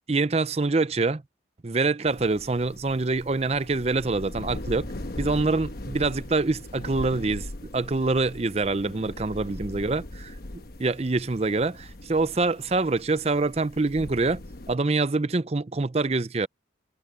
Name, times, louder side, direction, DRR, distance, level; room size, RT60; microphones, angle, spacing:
voice 1, 0.1-1.2 1.6-4.9 5.2-7.5 7.7-10.3 10.8-14.4 14.7-16.5, right 3 dB, 35° right, 0.6 m, -25 dB
sound 1, 2.1-14.8, left 1 dB, 55° left, 1.1 m, -40 dB
head